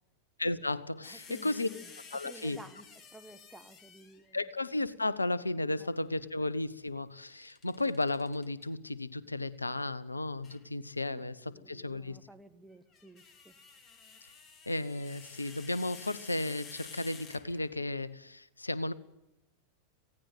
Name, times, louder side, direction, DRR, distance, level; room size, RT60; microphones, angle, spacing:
voice 1, 0.4-1.7 2.1-2.6 4.3-12.2 14.7-18.9, left 2 dB, 80° left, 19 dB, 1.0 m, -34 dB
sound 1, 1.0-4.3 7.2-8.7 10.4-10.6 12.7-17.9, left 5 dB, 25° left, 2.4 m, -52 dB
voice 2, 1.0-2.8 3.1-4.4 5.8-5.9 11.1-13.5, right 2 dB, 5° right, 6 dB, 1.7 m, -53 dB
18.0 x 16.5 x 9.3 m, 0.87 s
figure-of-eight pair, 90°, 0 cm